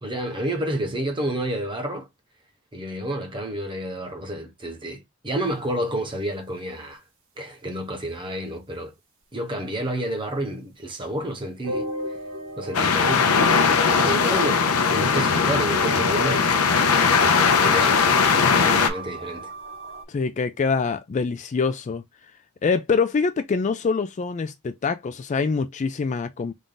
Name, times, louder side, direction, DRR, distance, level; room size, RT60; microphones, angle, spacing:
voice 1, 0.0-2.1 2.7-7.0 7.4-8.9 9.3-11.9 12.6-13.3 14.0-16.5 17.6-19.5, right 1 dB, 20° right, 1.0 m, -30 dB
sound 1, 11.6-20.0, right 1 dB, 65° right, 2.0 m, -35 dB
sound 2, 12.7-18.9, left 5 dB, 80° left, 0.6 m, -19 dB
voice 2, 20.1-22.0 22.6-26.5, left 5 dB, 35° left, 0.3 m, -25 dB
3.6 x 2.5 x 3.8 m
head